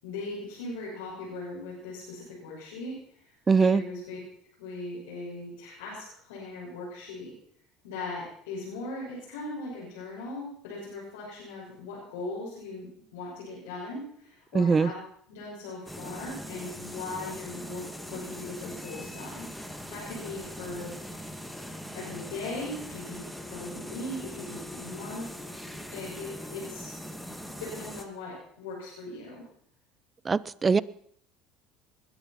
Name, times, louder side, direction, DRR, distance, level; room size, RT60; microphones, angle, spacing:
voice 1, 0.0-4.2 4.6-7.3 7.8-12.9 13.1-15.0 15.3-17.8 18.1-21.3 21.9-25.3 25.9-26.9 27.5-29.4, left 2 dB, 75° left, -6 dB, 6.4 m, -39 dB
voice 2, 3.5-3.8 14.5-14.9 30.3-30.8, right 5 dB, 25° right, 21 dB, 0.6 m, -22 dB
sound 1, 15.9-28.0, equal, ahead, 2.1 m, -41 dB
20.5 x 10.5 x 5.8 m, 0.65 s
hypercardioid pair, 70°, 0 cm